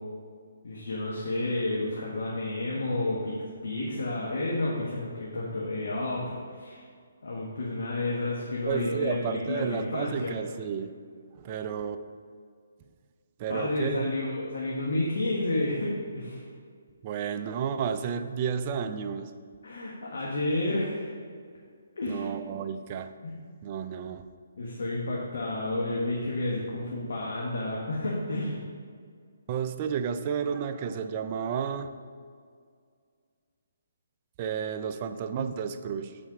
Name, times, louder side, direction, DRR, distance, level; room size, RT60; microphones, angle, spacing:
voice 1, 0.6-3.4 3.6-6.8 7.2-10.3 13.5-16.4 19.6-21.1 22.0-22.3 23.2-23.4 24.6-28.6, left 2 dB, 75° left, -4 dB, 1.4 m, -31 dB
voice 2, 8.7-10.9 11.4-12.0 13.4-14.0 17.0-19.3 22.1-23.1 23.6-24.3 29.5-31.9 34.4-36.2, right 7 dB, 30° right, 8 dB, 0.4 m, -31 dB
8.4 x 4.2 x 5.0 m, 2.1 s
hypercardioid pair, 155°, 0 cm